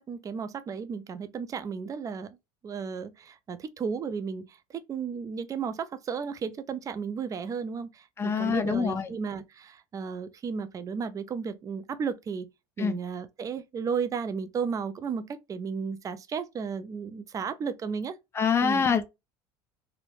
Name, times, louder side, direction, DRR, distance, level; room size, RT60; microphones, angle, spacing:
voice 1, 0.0-2.4 2.6-12.5 12.8-18.2 18.6-18.9, right 6 dB, 30° right, 0.4 m, -34 dB
voice 2, 8.2-9.1 12.8-12.9 18.3-19.0, left 6 dB, 20° left, 0.5 m, -25 dB
3.0 x 2.0 x 2.5 m
supercardioid pair, 105°, 11 cm